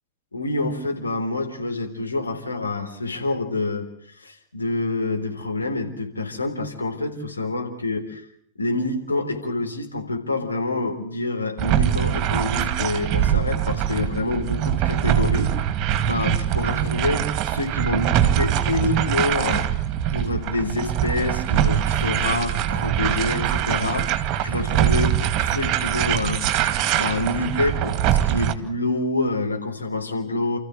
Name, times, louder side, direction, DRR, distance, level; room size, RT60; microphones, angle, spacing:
voice 1, 0.3-3.9 4.1-8.3 8.6-15.5 16.1-19.7 20.1-30.6, left 2 dB, 80° left, 2 dB, 3.7 m, -27 dB
sound 1, 11.6-28.5, right 11 dB, 35° right, 2.1 m, -23 dB
29.5 x 14.5 x 8.2 m, 0.66 s
figure-of-eight pair, 90°, 0 cm